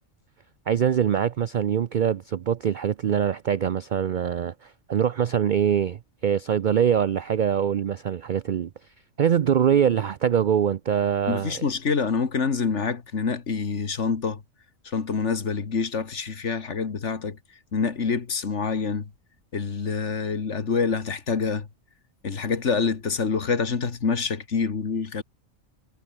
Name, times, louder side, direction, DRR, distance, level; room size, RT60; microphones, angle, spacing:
voice 1, 0.7-8.7 9.2-11.6, right 8 dB, 60° right, 0.5 m, -23 dB
voice 2, 11.3-14.4 14.9-17.4 17.7-19.1 19.5-21.7 22.2-25.2, left 5 dB, 60° left, 2.0 m, -26 dB
omnidirectional pair, 1.4 m